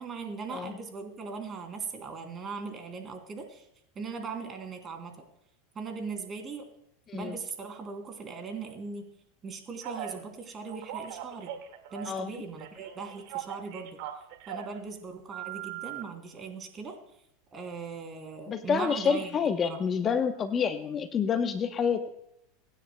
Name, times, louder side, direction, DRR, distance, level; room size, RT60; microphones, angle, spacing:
voice 1, 0.0-3.6 3.9-5.1 5.7-6.7 7.1-9.0 9.4-11.5 11.9-14.0 14.5-17.0 17.5-19.8, right 5 dB, 30° right, 4 dB, 2.9 m, -39 dB
Telephone, 9.8-10.2 10.7-12.3 12.6-14.8 15.3-16.0, right 11 dB, 65° right, 1.9 m, -39 dB
voice 2, 18.5-22.0, left 6 dB, 30° left, 9 dB, 0.9 m, -28 dB
24.0 x 10.0 x 2.2 m, 0.78 s
hypercardioid pair, 95°, 0 cm